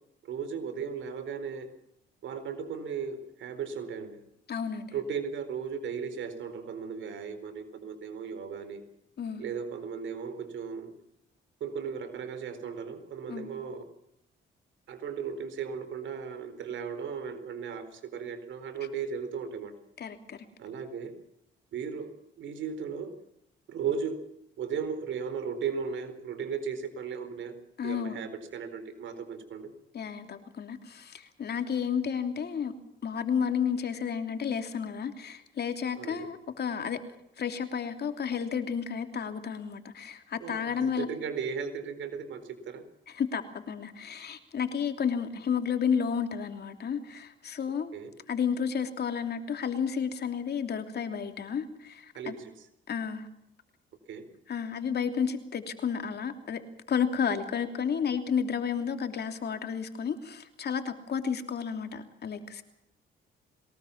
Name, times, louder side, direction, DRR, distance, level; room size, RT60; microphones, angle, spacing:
voice 1, 0.2-1.7 2.2-4.2 4.9-8.8 9.4-10.9 11.6-13.8 14.9-19.7 20.6-21.1 21.7-23.2 23.7-24.2 24.6-27.5 27.8-29.7 36.0-36.3 40.4-40.7 41.0-42.8 47.9-48.1 52.1-52.7 54.1-54.3, right 6 dB, 70° right, 4.3 m, -36 dB
voice 2, 4.5-4.9 9.2-9.4 13.3-13.5 20.0-20.4 27.8-28.2 29.9-32.7 33.0-37.0 37.4-41.1 43.1-47.9 48.3-52.4 52.9-53.3 54.5-56.6 56.9-62.6, left 7 dB, 55° left, 3.0 m, -32 dB
22.5 x 19.5 x 7.3 m
cardioid pair, 90°, 20 cm